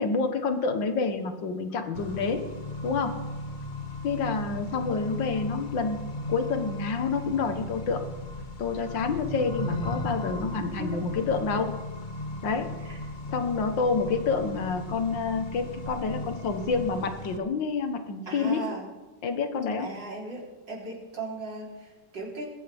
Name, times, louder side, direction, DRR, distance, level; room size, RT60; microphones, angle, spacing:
voice 1, 0.0-2.5 2.8-3.2 4.0-8.0 8.6-11.8 12.4-12.7 13.3-18.7 19.2-19.9, left 4 dB, 80° left, 7 dB, 2.0 m, -28 dB
Accelerating revving vroom, 1.9-17.4, left 2 dB, 30° left, 1.1 m, -36 dB
voice 2, 18.3-18.9 19.8-22.5, right 2 dB, 75° right, -3 dB, 4.6 m, -37 dB
20.5 x 16.0 x 3.6 m, 1.2 s
omnidirectional pair, 2.0 m